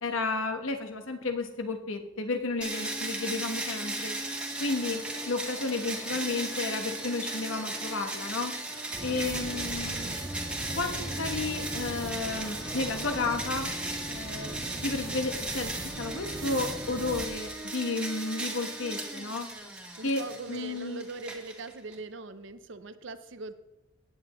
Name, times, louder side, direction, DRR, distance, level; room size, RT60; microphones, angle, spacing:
voice 1, 0.0-4.2 4.6-8.5 9.0-10.2 10.7-13.7 14.1-14.5 14.8-19.5 20.0-21.1, left 3 dB, 85° left, 5 dB, 1.3 m, -32 dB
sound 1, 2.6-22.0, right 2 dB, 5° right, 1.3 m, -36 dB
sound 2, 4.6-13.4, left 1 dB, 20° left, 1.3 m, -50 dB
sound 3, 8.9-17.3, right 1 dB, 20° right, 1.2 m, -40 dB
voice 2, 9.1-9.6 20.0-23.5, right 3 dB, 65° right, 11 dB, 0.7 m, -41 dB
17.0 x 8.8 x 3.1 m, 1.0 s
head